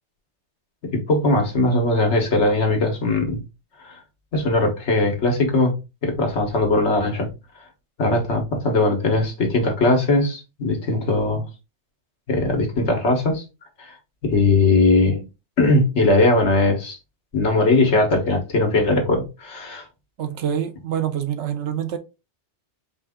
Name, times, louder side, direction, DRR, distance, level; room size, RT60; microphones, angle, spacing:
voice 1, 0.9-3.4 3.8-4.0 4.3-5.7 6.0-7.3 8.0-11.4 12.3-13.4 13.8-14.0 14.2-15.2 15.6-17.0 17.3-19.8, left 2 dB, 70° left, 1.6 m, -20 dB
voice 2, 20.2-22.0, right 9 dB, 75° right, 1.0 m, -26 dB
4.8 x 2.6 x 3.6 m
omnidirectional pair, 1.2 m